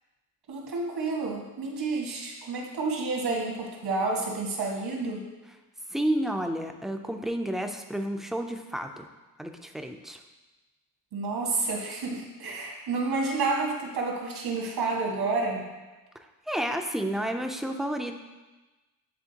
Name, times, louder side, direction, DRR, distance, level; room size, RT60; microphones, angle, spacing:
voice 1, 0.5-5.2 11.1-15.7, right 3 dB, 80° right, -1 dB, 1.6 m, -30 dB
voice 2, 5.9-9.0 9.4-10.2 16.5-18.2, right 1 dB, ahead, 4 dB, 0.3 m, -30 dB
9.7 x 3.7 x 2.8 m, 1.1 s
cardioid pair, 120°, 38 cm